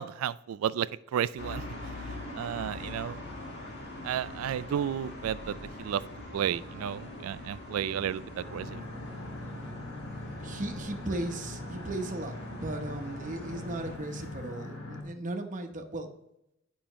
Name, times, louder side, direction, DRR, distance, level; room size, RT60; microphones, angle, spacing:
voice 1, 0.0-3.2 4.0-6.0 6.3-8.8, right 9 dB, 80° right, 16 dB, 0.3 m, -33 dB
sound 1, 1.4-14.0, left 1 dB, 55° left, 1.9 m, -43 dB
sound 2, 8.4-15.0, left 1 dB, 70° left, 2.2 m, -42 dB
voice 2, 10.4-16.1, right 2 dB, 40° right, 4 dB, 0.9 m, -37 dB
8.7 x 5.6 x 3.1 m, 0.83 s
head